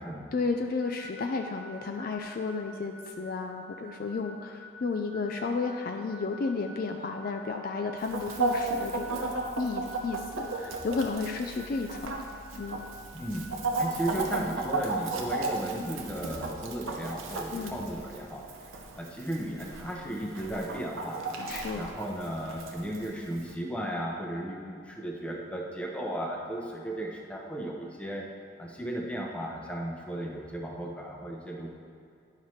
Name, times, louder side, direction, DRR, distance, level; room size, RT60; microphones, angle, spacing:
voice 1, 0.3-12.3 12.6-12.8 17.5-17.8 21.5-21.8, left 4 dB, 45° left, 4 dB, 0.3 m, -33 dB
sound 1, 0.8-13.5, left 1 dB, 75° left, 1.3 m, -49 dB
Chicken rooster, 8.0-23.5, right 3 dB, 85° right, 0.8 m, -35 dB
voice 2, 13.1-13.5 13.8-18.5 19.0-21.4 21.7-28.3 28.6-31.7, right 1 dB, 5° left, -1 dB, 0.6 m, -35 dB
10.0 x 5.7 x 3.1 m, 2.4 s
head